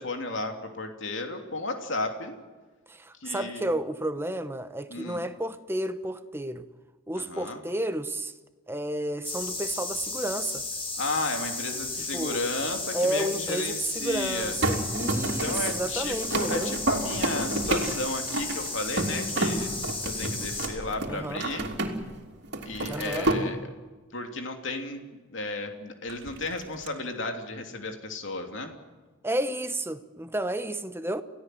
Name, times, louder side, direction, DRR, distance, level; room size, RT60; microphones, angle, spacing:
voice 1, 0.0-2.3 3.2-3.7 4.9-5.2 7.1-7.6 11.0-14.6 15.4-19.7 20.0-21.7 22.6-23.6 24.1-25.0 25.3-28.7, left 2 dB, 65° left, 3.0 m, -33 dB
voice 2, 2.9-6.7 7.1-8.3 8.7-10.6 12.1-12.4 12.9-16.7 21.1-21.4 22.9-23.3 29.2-31.2, right 1 dB, 10° right, 1.0 m, -31 dB
sound 1, 9.2-20.7, left 3 dB, 25° left, 6.2 m, -34 dB
sound 2, 14.6-22.2 22.4-23.4 26.1-26.9, right 2 dB, 55° right, 3.2 m, -30 dB
29.0 x 17.0 x 7.8 m
head